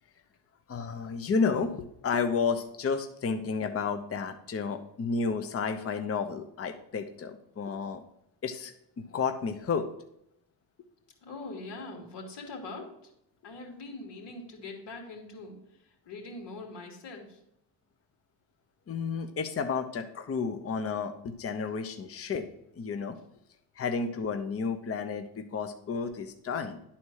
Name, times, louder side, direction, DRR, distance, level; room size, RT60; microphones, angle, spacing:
voice 1, 0.7-8.0 8.4-9.9 18.9-22.5 22.8-23.2 23.8-26.8, left 5 dB, 30° left, 7 dB, 0.8 m, -31 dB
voice 2, 11.2-13.1 13.4-17.4, left 2 dB, 70° left, 1 dB, 2.9 m, -43 dB
11.0 x 4.3 x 6.3 m, 0.77 s
cardioid pair, 105°, 44 cm